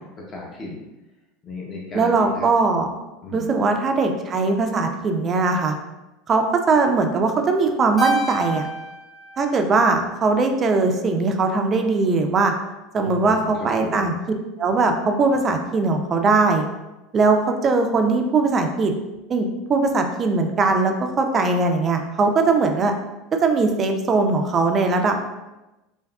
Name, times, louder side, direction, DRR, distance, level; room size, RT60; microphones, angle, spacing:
voice 1, 0.3-0.8 1.4-2.5 3.2-3.7 12.9-14.1, left 3 dB, 30° left, -3 dB, 0.7 m, -35 dB
voice 2, 1.9-2.9 3.3-5.7 6.3-8.7 9.4-12.5 12.9-14.1 14.6-16.6 17.1-19.0 19.3-22.9 23.3-25.2, right 3 dB, 30° right, 5 dB, 0.4 m, -20 dB
Keyboard (musical), 8.0-10.5, right 2 dB, 10° left, 1.0 m, -29 dB
3.5 x 2.5 x 2.3 m, 1.0 s
supercardioid pair, 120°, 0 cm